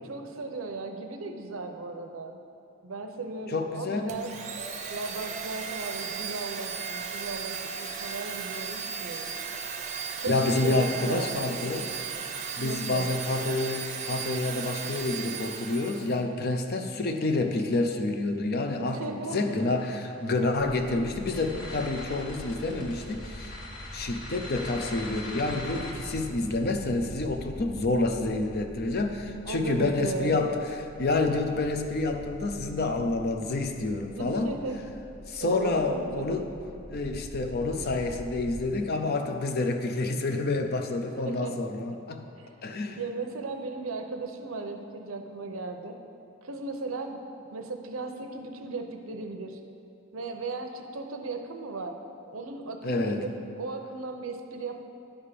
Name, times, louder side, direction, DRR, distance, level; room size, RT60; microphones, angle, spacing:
voice 1, 0.1-2.4 2.8-4.3 4.9-9.3 10.2-11.3 12.6-13.1 18.8-19.4 29.4-30.4 34.2-34.8 35.4-36.5 41.3-41.5 42.3-42.6 43.0-46.0 46.4-47.2 47.5-49.6 50.1-52.0 52.3-53.3 53.6-54.8, right 3 dB, 90° right, 5 dB, 0.7 m, -36 dB
voice 2, 3.5-4.2 10.3-11.9 12.6-23.5 23.9-34.5 35.3-36.5 36.9-42.3 42.6-43.0 52.8-53.3, left 2 dB, 50° left, 5 dB, 0.6 m, -28 dB
Domestic sounds home sounds, 4.1-16.2, right 6 dB, 35° right, 0.6 m, -36 dB
sound 1, 19.3-25.9, left 2 dB, 65° left, 1.7 m, -42 dB
sound 2, 20.6-38.6, equal, 5° right, 0.9 m, -44 dB
10.0 x 3.6 x 6.7 m, 2.6 s
head